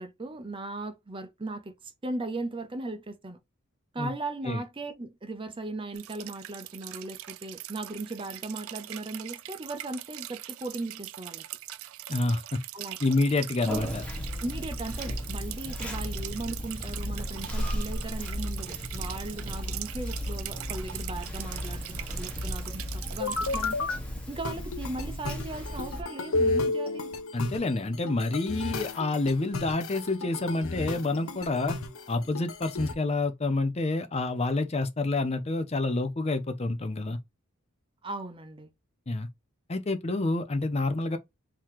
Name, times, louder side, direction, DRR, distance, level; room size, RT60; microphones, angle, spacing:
voice 1, 0.0-3.4 3.9-11.4 12.7-13.0 14.4-23.9 24.3-27.1 38.0-38.7, right 2 dB, 25° right, 0.6 m, -37 dB
sound 1, 5.9-23.7, right 14 dB, 70° right, 0.4 m, -42 dB
voice 2, 12.1-12.6 13.0-14.1 27.3-31.8 32.1-37.2 39.1-39.3 39.7-41.2, left 2 dB, 30° left, 0.5 m, -28 dB
Conversation, 13.7-26.0, equal, 5° left, 1.2 m, -35 dB
sound 2, 23.2-24.0 24.4-32.9, left 3 dB, 70° left, 0.8 m, -32 dB
3.9 x 2.9 x 4.6 m
head